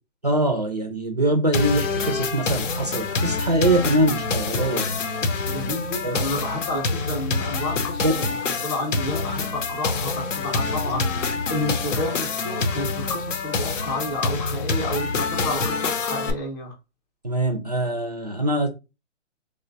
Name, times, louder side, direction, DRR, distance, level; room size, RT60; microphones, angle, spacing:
voice 1, 0.2-5.0 6.0-6.3 8.0-8.1 10.9-11.0 17.2-18.7, right 1 dB, 35° right, 0.4 m, -23 dB
sound 1, 1.5-16.3, left 4 dB, 90° left, 0.8 m, -26 dB
voice 2, 5.5-8.4 8.6-16.7, left 2 dB, 20° left, 0.6 m, -30 dB
3.3 x 2.2 x 3.8 m
hypercardioid pair, 170°, 36 cm